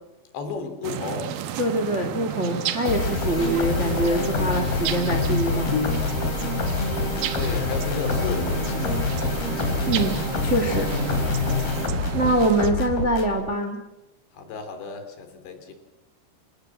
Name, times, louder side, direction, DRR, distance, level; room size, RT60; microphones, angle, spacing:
voice 1, 0.3-1.4 7.3-10.0 14.3-15.7, left 5 dB, 75° left, 6 dB, 5.4 m, -34 dB
sound 1, 0.8-12.7, right 9 dB, 70° right, 2.6 m, -32 dB
voice 2, 1.6-5.8 9.8-10.2 10.4-10.9 12.1-13.8, right 1 dB, 25° right, 5 dB, 1.7 m, -24 dB
sound 2, 2.9-13.4, left 4 dB, 60° left, 5.0 m, -26 dB
sound 3, 5.7-6.7, left 5 dB, 30° left, 2.1 m, -31 dB
27.5 x 18.0 x 7.4 m, 0.99 s
omnidirectional pair, 5.0 m